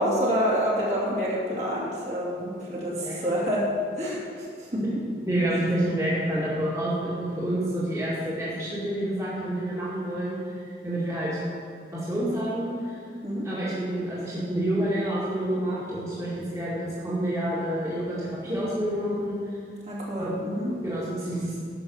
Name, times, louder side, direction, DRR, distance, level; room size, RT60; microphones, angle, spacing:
voice 1, 0.0-3.7 3.9-4.8 13.2-13.5 19.8-20.7, equal, 40° right, -6 dB, 2.7 m, -27 dB
voice 2, 5.3-11.4 11.9-13.0 13.4-19.6 20.8-21.6, right 1 dB, 20° right, -8 dB, 2.2 m, -28 dB
11.0 x 6.5 x 7.1 m, 2.4 s
head